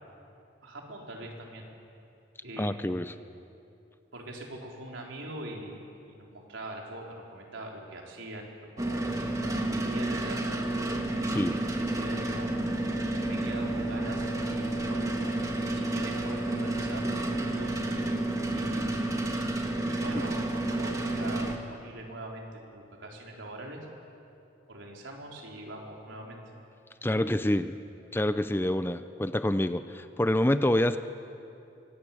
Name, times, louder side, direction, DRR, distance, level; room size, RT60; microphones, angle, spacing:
voice 1, 0.6-1.7 2.4-3.0 4.1-8.5 8.8-10.4 11.1-12.7 13.3-15.1 15.7-17.8 18.5-19.2 19.9-23.9 24.7-26.4, right 1 dB, 90° right, 0 dB, 4.1 m, -43 dB
voice 2, 2.6-3.1 11.3-11.6 20.1-20.2 27.0-27.8 28.1-31.0, left 1 dB, 10° left, 11 dB, 0.5 m, -27 dB
sound 1, 8.8-21.6, right 1 dB, 15° right, 1.7 m, -30 dB
24.5 x 18.0 x 8.6 m, 2.6 s
head